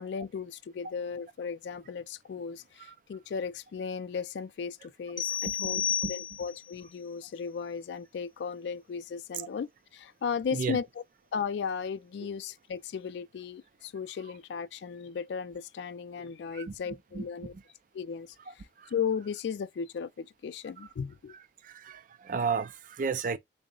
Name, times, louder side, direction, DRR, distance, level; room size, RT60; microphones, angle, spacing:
voice 1, 0.0-10.9 11.3-17.5 17.9-21.3, left 6 dB, 75° left, 0.3 m, -36 dB
sound 1, 5.2-6.7, left 9 dB, 25° left, 0.6 m, -31 dB
voice 2, 5.5-6.1 9.4-9.5 10.5-10.8 16.5-16.7 17.1-17.2 18.5-18.9 21.6-23.4, right 5 dB, 50° right, 0.4 m, -33 dB
3.8 x 2.0 x 3.6 m
head